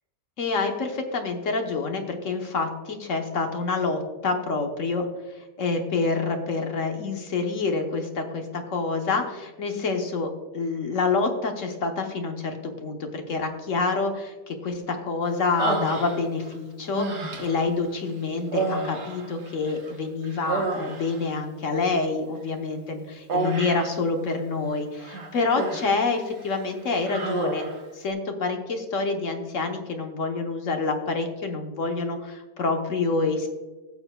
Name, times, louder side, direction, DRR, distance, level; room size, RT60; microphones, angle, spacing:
voice 1, 0.4-5.1 5.6-27.7 27.9-33.5, left 3 dB, 55° left, 4 dB, 1.2 m, -27 dB
Human voice, 15.6-16.5 16.9-17.7 18.5-19.9 20.2-21.3 23.3-24.0 25.0-26.0 26.4-26.6 27.0-27.8, right 3 dB, 90° right, 1.8 m, -30 dB
15.5 x 7.0 x 2.2 m, 1.2 s
omnidirectional pair, 1.8 m